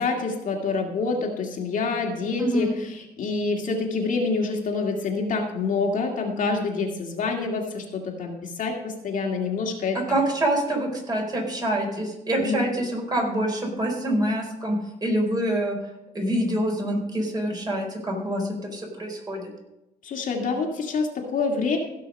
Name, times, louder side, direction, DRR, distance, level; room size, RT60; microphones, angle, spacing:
voice 1, 0.0-10.0 12.4-12.6 20.0-21.8, left 4 dB, 50° left, 1 dB, 2.1 m, -27 dB
voice 2, 2.4-2.8 10.1-15.8 16.1-19.5, right 1 dB, 25° right, 1 dB, 4.2 m, -26 dB
16.0 x 6.1 x 5.3 m, 0.93 s
cardioid pair, 110°, 17 cm